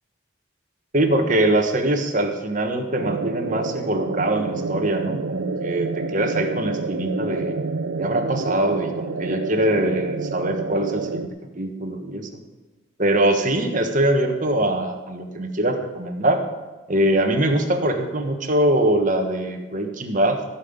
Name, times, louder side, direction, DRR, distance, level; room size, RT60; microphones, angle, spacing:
voice 1, 0.9-7.5 8.0-11.3 11.5-12.3 13.0-16.4 16.9-20.4, right 1 dB, 40° right, 4 dB, 1.4 m, -22 dB
sound 1, 3.0-11.3, right 4 dB, 75° right, 0.6 m, -29 dB
16.0 x 5.7 x 8.0 m, 1.2 s
head